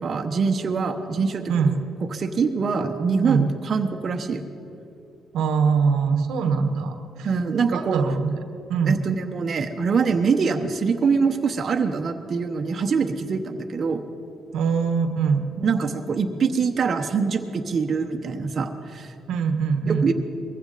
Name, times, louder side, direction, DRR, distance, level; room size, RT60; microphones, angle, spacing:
voice 1, 0.0-1.4 2.1-4.4 7.2-8.0 8.9-14.0 15.6-19.1 19.9-20.1, right 5 dB, 50° right, 4 dB, 1.0 m, -24 dB
voice 2, 5.3-7.3 7.7-8.4 8.7-9.0 14.5-15.5 19.3-20.1, right 5 dB, 85° right, 7 dB, 1.1 m, -22 dB
21.0 x 15.5 x 4.1 m, 2.6 s
cardioid pair, 90°, 0 cm